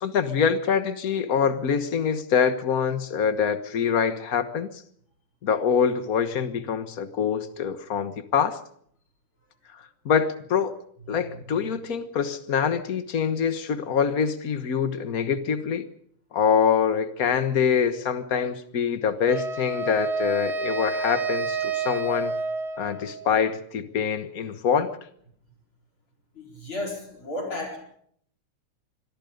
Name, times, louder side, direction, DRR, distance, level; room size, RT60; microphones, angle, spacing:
voice 1, 0.0-4.8 5.4-8.6 9.7-10.7 11.1-15.9 16.3-22.3 22.8-24.9, left 7 dB, 60° left, 10 dB, 0.9 m, -25 dB
Wind instrument woodwind instrument, 19.3-23.4, right 3 dB, 75° right, 0.6 m, -29 dB
voice 2, 26.3-27.8, left 1 dB, 40° left, 1 dB, 5.1 m, -33 dB
25.5 x 22.0 x 5.2 m, 0.65 s
omnidirectional pair, 3.5 m